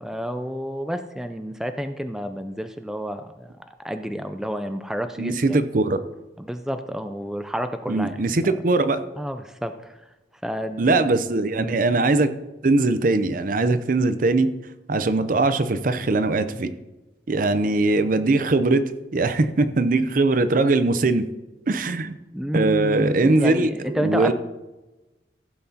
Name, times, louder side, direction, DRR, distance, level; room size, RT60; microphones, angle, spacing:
voice 1, 0.0-5.6 6.4-8.2 9.2-10.0 10.4-10.8 11.6-11.8 22.3-24.3, equal, 5° right, 8 dB, 0.4 m, -30 dB
voice 2, 5.2-6.0 7.9-9.0 10.8-12.3 12.6-14.5 14.9-16.7 17.3-18.8 19.1-21.2 21.7-22.2 22.5-24.3, right 2 dB, 50° right, 11 dB, 0.6 m, -21 dB
15.0 x 7.7 x 2.8 m, 1.1 s
head